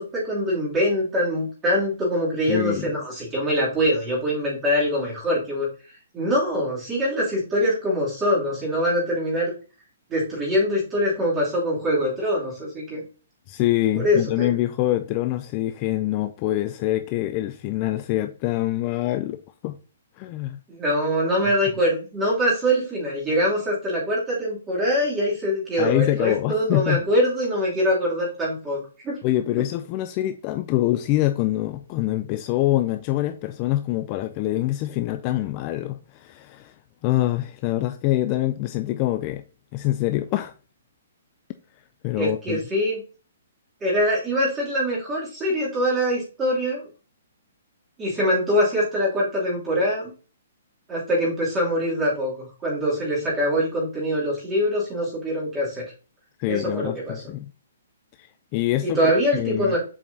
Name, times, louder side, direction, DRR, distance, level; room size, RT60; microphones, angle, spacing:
voice 1, 0.0-5.7 6.1-9.5 10.1-13.0 14.0-14.5 20.7-29.2 42.1-43.0 43.8-46.9 48.0-50.1 50.9-52.3 52.6-55.8 56.5-57.2 58.8-59.8, equal, 15° right, 2.8 m, -23 dB
voice 2, 2.5-3.0 13.5-19.8 20.2-20.6 25.8-27.1 29.2-36.7 37.0-39.4 39.7-40.5 42.0-42.6 56.4-57.5 58.2-59.8, left 15 dB, 30° left, 0.4 m, -25 dB
7.3 x 5.0 x 2.7 m
hypercardioid pair, 155°, 0 cm